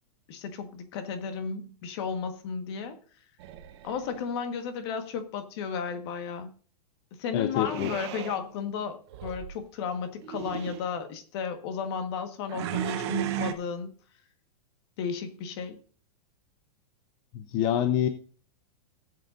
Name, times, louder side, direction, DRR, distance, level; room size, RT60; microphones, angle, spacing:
voice 1, 0.3-3.0 3.8-6.5 7.2-13.9 15.0-15.8, left 6 dB, 40° left, 8 dB, 1.5 m, -34 dB
sound 1, 3.4-4.2 7.6-8.4 9.1-9.5 10.2-10.9 12.5-13.5, right 12 dB, 40° right, 0.9 m, -35 dB
voice 2, 7.3-7.9 17.3-18.1, left 10 dB, 20° left, 10 dB, 0.4 m, -26 dB
16.5 x 7.8 x 2.6 m, 0.42 s
supercardioid pair, 175°, 20 cm